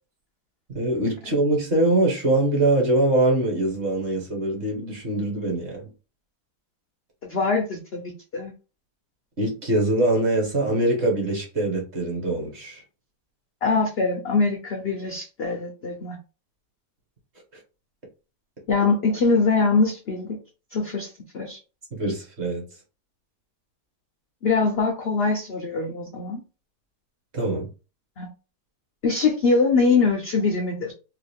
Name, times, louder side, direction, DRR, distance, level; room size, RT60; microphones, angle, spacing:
voice 1, 0.7-5.9 9.4-12.8 21.9-22.6 27.3-27.7, right 2 dB, 45° right, -1 dB, 1.2 m, -23 dB
voice 2, 7.2-8.5 13.6-16.2 18.7-20.4 20.7-21.6 24.4-26.4 28.2-28.3 29.0-30.9, left 4 dB, 70° left, 2 dB, 0.5 m, -23 dB
2.9 x 2.4 x 3.4 m, 0.33 s
omnidirectional pair, 1.8 m